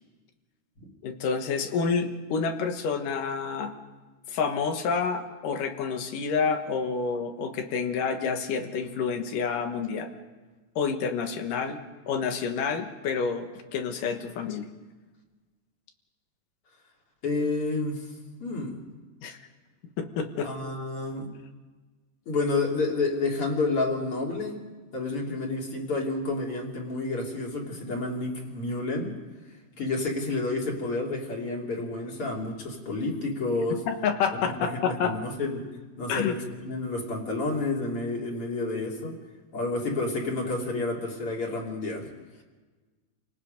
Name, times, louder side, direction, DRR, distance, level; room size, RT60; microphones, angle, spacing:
voice 1, 1.0-3.7 4.3-10.1 10.8-11.8 12.1-14.7 19.2-19.4 20.0-20.5 33.9-35.1 36.1-36.4, left 5 dB, 85° left, 6 dB, 3.0 m, -28 dB
voice 2, 17.2-18.0 18.4-18.8 20.4-21.3 22.3-24.6 24.9-29.1 29.8-33.9 34.4-35.6 36.0-39.2 39.5-42.1, left 3 dB, 45° left, -1 dB, 3.5 m, -30 dB
29.0 x 18.5 x 5.2 m, 1.3 s
omnidirectional pair, 3.6 m